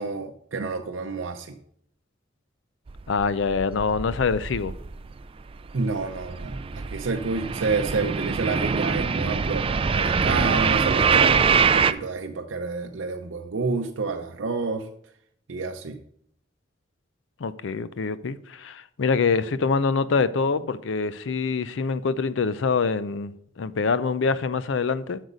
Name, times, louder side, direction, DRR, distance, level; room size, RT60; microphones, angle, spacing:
voice 1, 0.0-1.6 5.7-14.9 15.5-16.0, right 4 dB, 90° right, 0.6 m, -29 dB
sound 1, 2.9-5.2 5.5-11.9, right 5 dB, 30° right, 0.3 m, -24 dB
voice 2, 3.1-4.7 17.4-25.2, left 5 dB, 75° left, 0.5 m, -25 dB
8.0 x 6.4 x 5.1 m
head